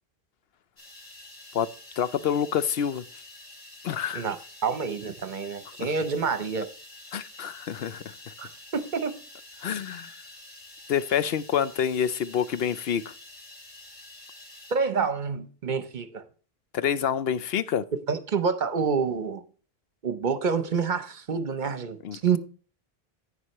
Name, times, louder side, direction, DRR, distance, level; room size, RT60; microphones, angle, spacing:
sound 1, 0.8-14.7, left 2 dB, 50° left, 3.0 m, -48 dB
voice 1, 2.0-3.0 3.8-4.2 5.8-5.9 7.1-8.0 9.6-10.2 10.9-13.0 16.7-17.8 22.0-22.4, left 8 dB, 75° left, 0.9 m, -27 dB
voice 2, 4.6-6.7 8.4-9.2 14.7-16.3 18.1-19.4 20.0-22.4, right 5 dB, 50° right, 0.8 m, -28 dB
11.0 x 8.7 x 3.0 m
omnidirectional pair, 1.0 m